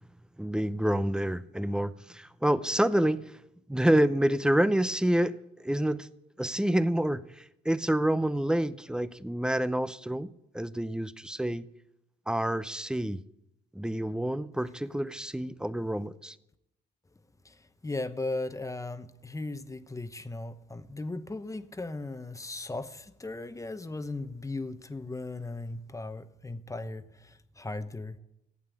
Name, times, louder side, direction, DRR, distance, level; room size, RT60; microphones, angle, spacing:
voice 1, 0.4-3.4 3.7-6.1 6.4-11.7 12.3-13.2 13.7-16.4, right 1 dB, 5° right, 0.6 m, -28 dB
voice 2, 17.4-28.2, left 2 dB, 15° left, 1.0 m, -37 dB
15.0 x 8.8 x 8.6 m
cardioid pair, 90°, 20 cm